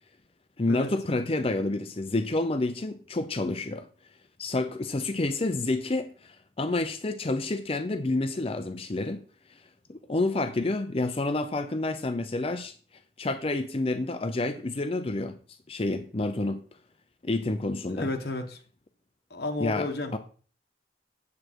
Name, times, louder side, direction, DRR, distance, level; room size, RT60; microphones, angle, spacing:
voice 1, 0.6-3.9 4.4-9.2 9.9-12.7 13.2-15.4 15.7-16.6 17.2-18.1 19.6-20.2, left 2 dB, 30° left, 0.6 m, -29 dB
voice 2, 17.9-18.6 19.3-20.2, left 2 dB, 60° left, 1.5 m, -32 dB
8.4 x 7.7 x 4.6 m
head